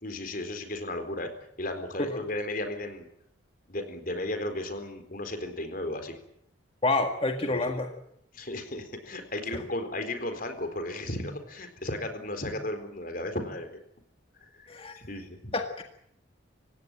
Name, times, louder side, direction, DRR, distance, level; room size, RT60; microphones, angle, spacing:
voice 1, 0.0-1.3 1.6-3.1 3.7-6.2 7.5-7.7 8.3-13.8 14.5-14.7 15.0-15.4, left 1 dB, 45° left, 7 dB, 4.1 m, -34 dB
voice 2, 6.8-7.9 9.5-9.6 14.7-15.0 15.5-15.8, left 2 dB, 30° left, 4 dB, 1.8 m, -28 dB
27.5 x 16.5 x 9.1 m, 0.73 s
head